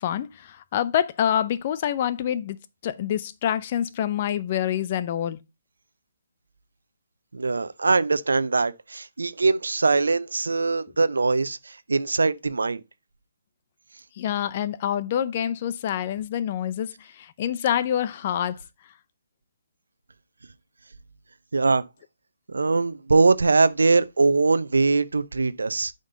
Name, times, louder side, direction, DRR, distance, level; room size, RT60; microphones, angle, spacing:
voice 1, 0.0-2.6 2.8-5.4 14.2-16.9 17.2-18.5, left 10 dB, 35° left, 0.6 m, -26 dB
voice 2, 7.3-12.8 21.5-21.8 22.5-25.9, right 3 dB, 80° right, 0.7 m, -22 dB
8.8 x 5.3 x 3.9 m
hypercardioid pair, 150°, 0 cm